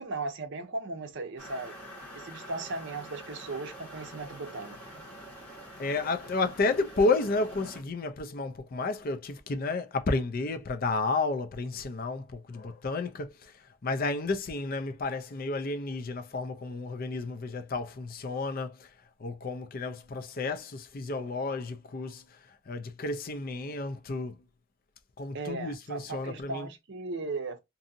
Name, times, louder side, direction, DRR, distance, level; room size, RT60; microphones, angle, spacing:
voice 1, 0.0-5.0 25.3-27.6, right 3 dB, 55° right, 0.6 m, -37 dB
sound 1, 1.4-7.8, equal, 5° left, 1.3 m, -46 dB
voice 2, 5.8-13.5 13.8-18.9 19.2-22.2 22.7-24.4 25.2-26.7, left 3 dB, 40° left, 0.4 m, -31 dB
2.7 x 2.6 x 2.5 m
head